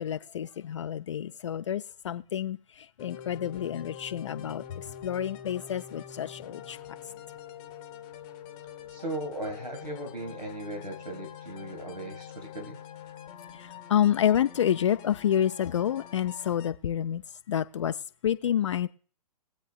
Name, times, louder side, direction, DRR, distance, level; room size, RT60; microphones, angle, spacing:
voice 1, 0.0-7.0 13.5-17.2 17.5-18.9, left 10 dB, 45° left, 0.4 m, -29 dB
sound 1, 3.0-16.7, left 9 dB, 20° left, 0.9 m, -45 dB
voice 2, 8.9-12.8, right 1 dB, 90° right, 1.9 m, -37 dB
21.0 x 8.1 x 2.3 m
figure-of-eight pair, 125°, 21 cm